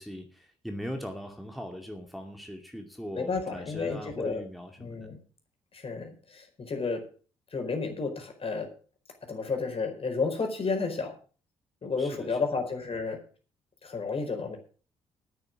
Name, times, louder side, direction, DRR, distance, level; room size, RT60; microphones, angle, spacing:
voice 1, 0.0-5.1 12.0-12.4, equal, ahead, 3 dB, 2.4 m, -40 dB
voice 2, 3.2-4.4 4.8-5.2 5.7-7.0 7.5-8.7 9.3-11.1 11.8-13.2 13.8-14.6, left 4 dB, 45° left, 4 dB, 4.6 m, -31 dB
9.7 x 9.3 x 7.6 m, 0.40 s
hypercardioid pair, 45°, 14 cm